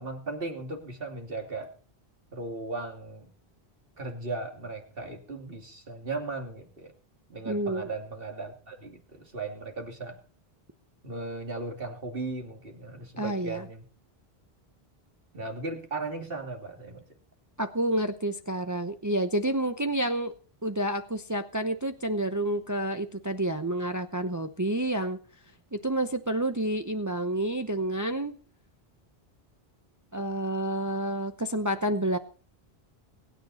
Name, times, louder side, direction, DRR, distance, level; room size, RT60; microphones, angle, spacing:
voice 1, 0.0-1.7 2.3-3.3 4.0-6.9 7.3-10.2 11.0-13.8 15.3-17.0, right 3 dB, 60° right, 4 dB, 2.9 m, -37 dB
voice 2, 7.4-7.9 13.2-13.6 17.6-20.3 20.6-25.2 25.7-28.4 30.1-32.2, right 1 dB, 20° right, 8 dB, 0.8 m, -29 dB
22.5 x 9.8 x 4.2 m, 0.38 s
omnidirectional pair, 1.1 m